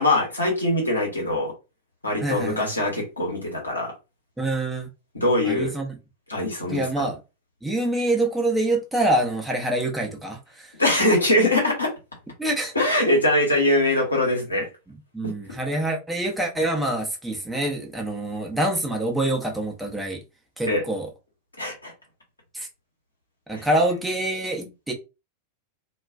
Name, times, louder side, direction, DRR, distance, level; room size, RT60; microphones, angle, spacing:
voice 1, 0.0-1.5 2.0-3.9 5.1-5.7 6.3-7.1 10.8-11.9 12.7-14.7 15.2-15.3 20.7-20.8 21.6-21.9 23.5-23.7, left 1 dB, 80° left, 1.0 m, -22 dB
voice 2, 2.2-2.7 4.4-4.9 5.4-6.0 6.7-7.2 7.6-10.7 12.4-12.7 15.1-20.2 20.6-21.1 22.5-22.7 23.5-24.9, right 1 dB, 5° right, 0.6 m, -26 dB
2.3 x 2.2 x 2.4 m
figure-of-eight pair, 90°, 0 cm